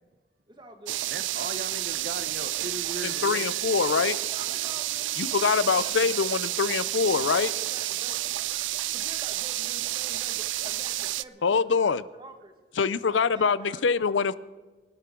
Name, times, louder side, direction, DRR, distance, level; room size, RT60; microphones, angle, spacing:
voice 1, 0.5-1.0 3.9-6.3 7.0-8.2 8.9-12.5 12.9-13.9, right 1 dB, 25° right, 1.8 m, -47 dB
sound 1, 0.9-11.2, right 15 dB, 85° right, 0.4 m, -30 dB
voice 2, 1.1-3.6, right 2 dB, 50° right, 1.0 m, -38 dB
sound 2, 2.3-4.6 4.9-5.0, left 5 dB, 20° left, 3.3 m, -52 dB
voice 3, 3.0-4.2 5.2-7.5 11.4-12.0 12.8-14.3, left 5 dB, 85° left, 0.6 m, -24 dB
25.5 x 12.5 x 3.8 m
head